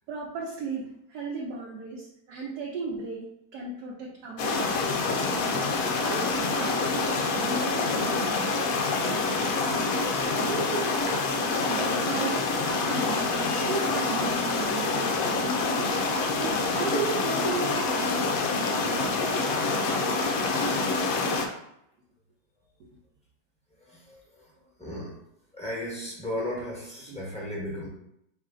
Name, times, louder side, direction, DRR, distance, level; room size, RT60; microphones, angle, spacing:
voice 1, 0.1-5.3 5.9-9.7 10.3-10.9 11.7-15.9 16.3-20.1 22.9-23.0 27.1-27.2, right 3 dB, 65° right, -4 dB, 1.2 m, -36 dB
sound 1, 4.4-21.5, left 3 dB, 70° left, 0.8 m, -26 dB
voice 2, 23.7-25.2 25.5-27.9, left 1 dB, 5° left, -5 dB, 0.9 m, -36 dB
4.2 x 3.2 x 3.7 m, 0.77 s
omnidirectional pair, 2.1 m